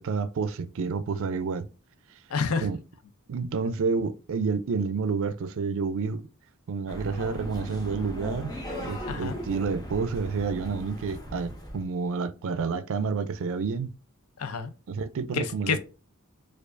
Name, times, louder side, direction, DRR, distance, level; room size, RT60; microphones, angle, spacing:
voice 1, 0.0-1.7 2.6-2.8 3.3-6.2 6.7-8.5 8.8-13.9 14.9-15.8, right 5 dB, 65° right, 0.4 m, -29 dB
voice 2, 2.3-2.7 9.1-9.4 14.4-14.7 15.3-15.8, left 5 dB, 70° left, 0.5 m, -28 dB
sound 1, 6.9-11.8, equal, 20° left, 0.8 m, -38 dB
4.5 x 2.4 x 2.5 m
head